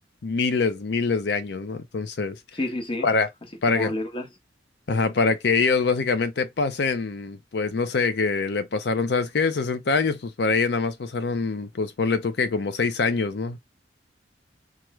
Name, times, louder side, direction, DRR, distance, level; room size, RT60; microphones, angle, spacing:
voice 1, 0.2-2.4 3.0-3.3 3.6-3.9 4.9-13.6, left 4 dB, 65° left, 0.5 m, -24 dB
voice 2, 2.5-3.1 3.7-4.3, left 1 dB, 30° left, 1.0 m, -29 dB
4.5 x 2.4 x 3.1 m
head